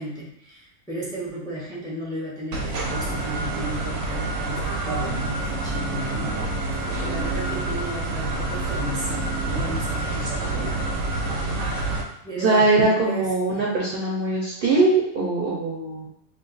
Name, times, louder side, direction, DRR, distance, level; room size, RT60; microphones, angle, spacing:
voice 1, 0.0-11.6 12.2-13.7 14.3-14.4, right 1 dB, 5° left, -6 dB, 0.6 m, -34 dB
sound 1, 2.5-12.0, right 2 dB, 75° right, 0.9 m, -27 dB
voice 2, 12.4-16.1, right 2 dB, 55° right, -5 dB, 0.7 m, -21 dB
2.5 x 2.4 x 3.9 m, 0.80 s
omnidirectional pair, 1.4 m